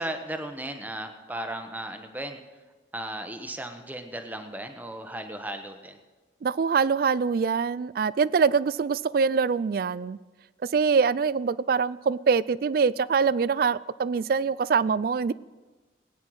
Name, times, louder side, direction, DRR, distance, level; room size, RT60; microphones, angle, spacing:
voice 1, 0.0-2.4 2.9-6.0, right 1 dB, 10° right, 0.9 m, -35 dB
voice 2, 6.4-10.2 10.7-15.3, right 5 dB, 50° right, 0.3 m, -24 dB
19.5 x 9.4 x 4.8 m
head